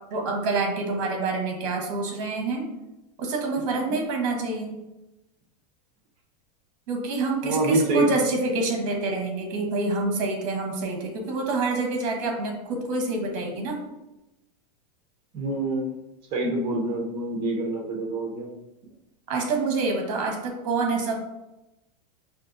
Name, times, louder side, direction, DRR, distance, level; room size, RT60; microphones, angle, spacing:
voice 1, 0.1-2.7 3.2-4.7 6.9-13.8 19.3-21.1, right 3 dB, 50° right, 3 dB, 1.0 m, -27 dB
voice 2, 7.4-8.1 15.3-15.9 16.3-18.5, right 2 dB, 30° right, -1 dB, 0.9 m, -25 dB
5.1 x 2.8 x 2.6 m, 0.94 s
supercardioid pair, 165°, 20 cm